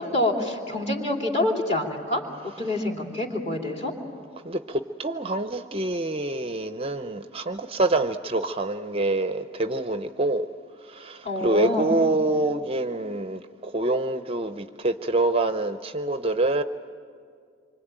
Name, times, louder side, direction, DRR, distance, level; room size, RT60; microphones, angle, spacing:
voice 1, 0.0-2.2 2.6-3.9 11.2-12.0, left 1 dB, 30° left, 1 dB, 3.1 m, -26 dB
voice 2, 4.4-10.5 10.9-16.6, right 2 dB, 30° right, 9 dB, 0.6 m, -26 dB
26.5 x 24.5 x 9.0 m, 2.2 s
head